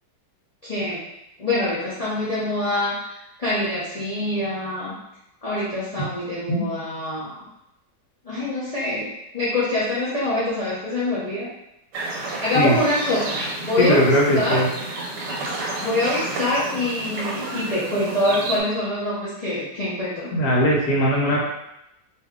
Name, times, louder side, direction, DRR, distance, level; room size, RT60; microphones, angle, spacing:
voice 1, 0.6-1.0 1.4-2.9 3.4-4.9 5.4-7.4 8.2-9.1 9.3-11.5 12.2-14.1 14.3-14.6 15.8-20.3, left 1 dB, 35° left, -10 dB, 0.6 m, -25 dB
sound 1, 11.9-18.6, right 2 dB, 85° right, 1.4 m, -31 dB
voice 2, 13.8-14.7 20.2-21.4, equal, 75° left, -2 dB, 1.4 m, -19 dB
2.8 x 2.8 x 3.5 m, 0.85 s
omnidirectional pair, 1.8 m